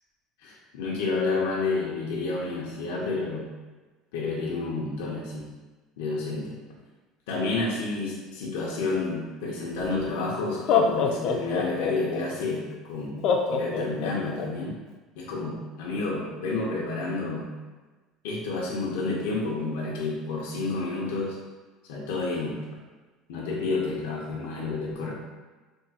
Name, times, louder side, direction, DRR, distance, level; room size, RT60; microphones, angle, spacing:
voice 1, 0.4-3.5 4.1-5.4 6.0-6.6 7.3-12.6 12.9-14.7 15.2-17.5 18.2-21.4 21.9-22.6 23.3-25.1, left 3 dB, 90° left, -3 dB, 0.7 m, -30 dB
Laughter, 9.8-9.9 10.5-12.2 13.2-14.5, left 6 dB, 55° left, 0.4 m, -24 dB
3.5 x 2.2 x 4.1 m, 1.3 s
cardioid pair, 140°, 0 cm